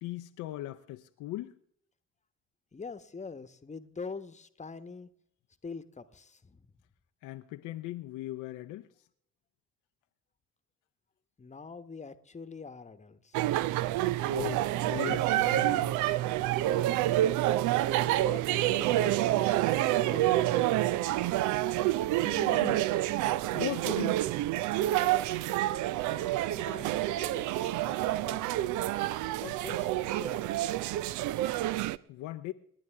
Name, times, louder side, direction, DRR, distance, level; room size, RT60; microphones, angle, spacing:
voice 1, 0.0-1.6 7.2-8.9 14.2-16.0 22.1-22.8 23.2-24.2 32.1-32.5, left 15 dB, 60° left, 0.8 m, -39 dB
voice 2, 2.7-5.1 5.6-6.7 11.4-13.4 18.0-19.6 19.9-21.0 26.0-28.7 29.4-29.9 30.2-30.7, left 4 dB, 20° left, 1.2 m, -45 dB
sound 1, 13.3-32.0, right 15 dB, 55° right, 0.6 m, -28 dB
28.5 x 10.5 x 3.5 m
figure-of-eight pair, 50°, 35 cm